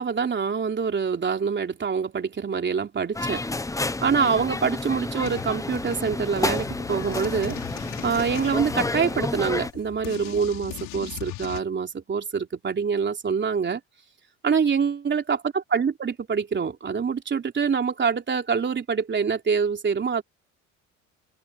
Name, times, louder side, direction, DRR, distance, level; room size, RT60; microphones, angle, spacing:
voice 1, 0.0-3.4 4.0-7.6 8.0-13.8 14.4-20.2, right 6 dB, 35° right, 3.4 m, -25 dB
sound 1, 3.1-9.7, left 2 dB, 10° left, 0.9 m, -30 dB
sound 2, 5.2-11.6, left 18 dB, 75° left, 6.8 m, -39 dB
supercardioid pair, 85°, 33 cm